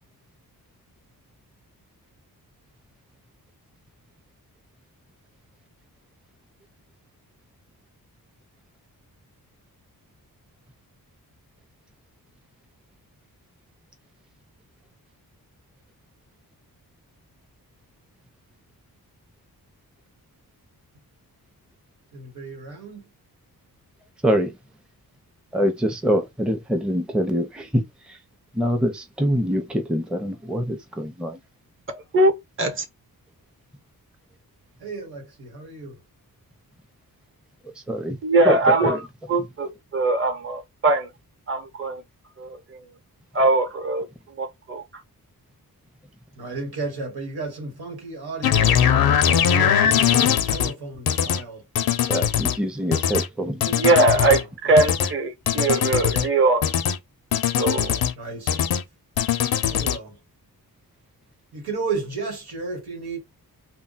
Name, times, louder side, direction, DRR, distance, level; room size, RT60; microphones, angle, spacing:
voice 1, 22.1-23.0 34.8-35.9 46.4-51.6 54.1-54.8 58.2-58.6 59.7-60.2 61.5-63.2, right 3 dB, 90° right, 1.3 m, -33 dB
voice 2, 25.5-27.6 28.6-31.3 37.9-38.2 38.5-39.0 52.1-53.6, equal, ahead, 0.6 m, -24 dB
voice 3, 31.9-32.3 32.6-32.8 38.2-41.1 41.5-42.0 42.4-42.6 43.3-44.1 44.4-44.8 53.4-56.7 57.6-58.0, right 2 dB, 35° right, 1.0 m, -21 dB
sound 1, 48.4-50.7 51.1-51.4 51.7-52.6 52.9-53.3 53.6-54.4 54.8-55.1 55.5-56.3 56.6-57.0 57.3-58.1 58.5-58.8 59.2-60.0, left 9 dB, 70° left, 0.5 m, -21 dB
2.2 x 2.1 x 3.8 m
cardioid pair, 80°, 37 cm